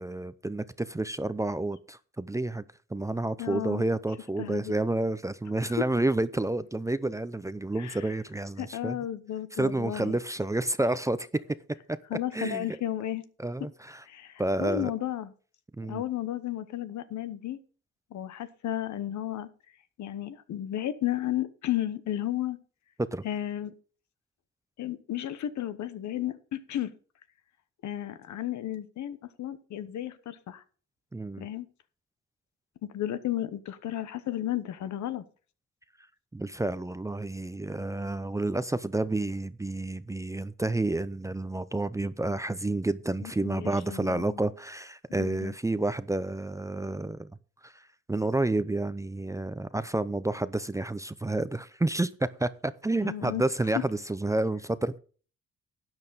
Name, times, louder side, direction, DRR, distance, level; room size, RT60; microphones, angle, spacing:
voice 1, 0.0-2.6 2.9-9.0 9.6-11.4 11.9-12.0 12.3-12.8 13.4-14.0 14.4-14.9 15.8-16.0 23.1-23.2 31.1-31.5 36.3-47.3 47.6-55.0, right 2 dB, 10° right, 0.6 m, -30 dB
voice 2, 3.4-3.9 4.4-4.7 5.6-5.7 7.8-8.0 8.6-10.2 12.1-13.3 14.0-15.3 15.8-17.6 18.1-19.5 20.0-22.6 23.2-23.7 24.8-26.9 27.8-30.6 31.4-31.7 32.9-35.2 43.2-44.4 45.2-45.5 53.0-53.4, left 12 dB, 70° left, 1.0 m, -33 dB
12.5 x 8.9 x 4.0 m
cardioid pair, 90°, 30 cm